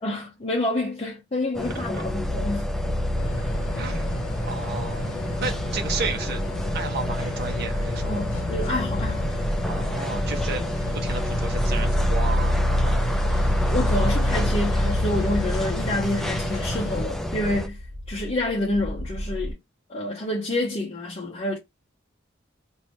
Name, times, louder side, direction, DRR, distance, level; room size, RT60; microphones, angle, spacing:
voice 1, 0.0-2.8 8.1-9.3 13.7-17.8 18.1-19.6 19.9-21.6, left 1 dB, 30° left, 0.7 m, -28 dB
sound 1, 1.5-17.7, left 1 dB, ahead, 0.4 m, -31 dB
sound 2, 2.0-19.5, left 1 dB, 80° right, 1.0 m, -28 dB
sound 3, 3.2-17.0, equal, 90° left, 0.8 m, -32 dB
voice 2, 3.7-6.4 6.7-8.3 9.7-13.1, right 4 dB, 55° right, 0.9 m, -33 dB
3.0 x 2.6 x 3.2 m
head